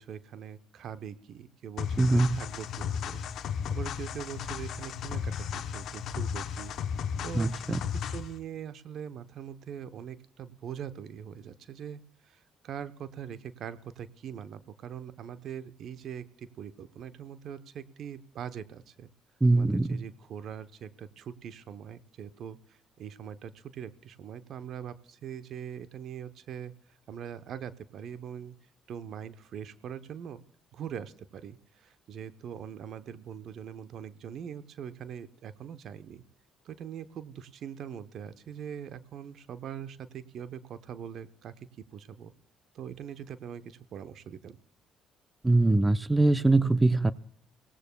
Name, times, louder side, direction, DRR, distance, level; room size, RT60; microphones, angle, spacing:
voice 1, 0.0-6.7 7.2-19.1 19.5-26.7 27.1-28.5 28.9-30.4 30.7-36.2 36.6-41.5 41.9-42.3 42.7-44.6, right 8 dB, 60° right, 12 dB, 0.8 m, -42 dB
sound 1, 1.8-8.4, left 7 dB, 60° left, 0.9 m, -34 dB
voice 2, 2.0-2.4 7.3-7.8 19.4-20.0 45.4-47.1, right 2 dB, 15° right, 15 dB, 0.6 m, -23 dB
29.5 x 18.0 x 2.3 m, 0.65 s
hypercardioid pair, 55°, 0 cm